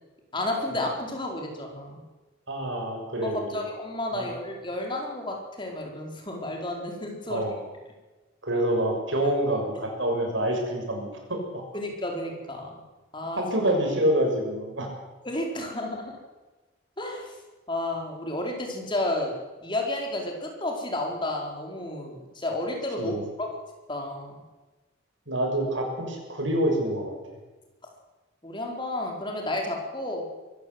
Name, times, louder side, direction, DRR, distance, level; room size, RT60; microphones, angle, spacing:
voice 1, 0.3-1.9 3.2-7.4 9.2-9.3 11.7-12.8 13.1-13.4 15.2-16.1 17.0-17.3 17.7-19.3 19.6-23.5 23.9-24.3 28.4-30.2, left 1 dB, 25° left, 1 dB, 4.6 m, -31 dB
voice 2, 2.5-3.6 4.1-4.3 7.3-7.6 8.4-11.6 13.3-14.9 23.0-23.2 25.3-27.1, right 1 dB, 70° right, 2 dB, 6.5 m, -27 dB
23.5 x 15.0 x 8.0 m, 1.2 s
head